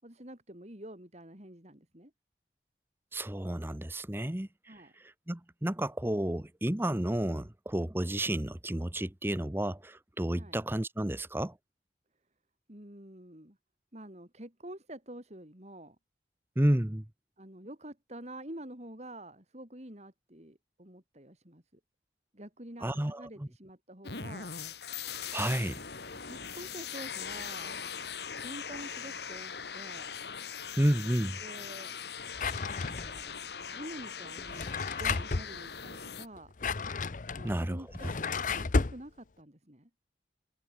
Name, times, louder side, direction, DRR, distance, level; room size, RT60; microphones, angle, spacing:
voice 1, 0.0-2.1 4.7-4.9 10.3-10.6 12.7-13.6 13.9-16.0 17.4-21.6 22.3-24.5 26.2-27.8 28.4-30.1 31.4-31.9 32.8-36.5 37.3-39.9, right 1 dB, 40° right, 4.4 m, -48 dB
voice 2, 3.1-4.5 5.3-11.5 16.6-17.0 22.8-23.5 25.3-25.8 30.8-31.4 37.4-37.8, right 1 dB, 15° right, 0.8 m, -31 dB
sound 1, 24.0-36.3, left 7 dB, 70° left, 2.2 m, -41 dB
Drawer open or close, 32.3-33.3 34.4-35.5 36.4-39.0, left 4 dB, 45° left, 0.7 m, -32 dB
head